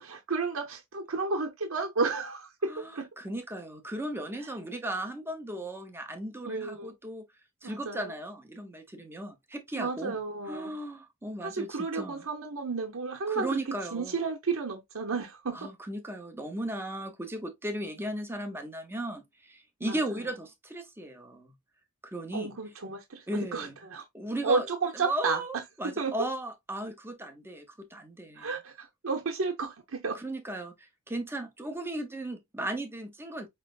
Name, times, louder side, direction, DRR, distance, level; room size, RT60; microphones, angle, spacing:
voice 1, 0.0-3.1 4.4-4.5 6.4-6.9 7.6-8.1 9.7-10.7 11.4-13.6 13.9-15.7 19.8-20.2 22.3-24.0 24.4-25.4 26.0-26.2 28.4-30.2, right 4 dB, 70° right, 0.9 m, -32 dB
voice 2, 2.7-7.2 7.6-10.2 10.5-12.2 13.3-14.1 15.5-21.5 22.0-22.5 23.3-23.7 24.1-24.7 24.9-28.5 30.1-33.5, right 1 dB, 10° right, 0.8 m, -36 dB
5.2 x 3.2 x 2.4 m
head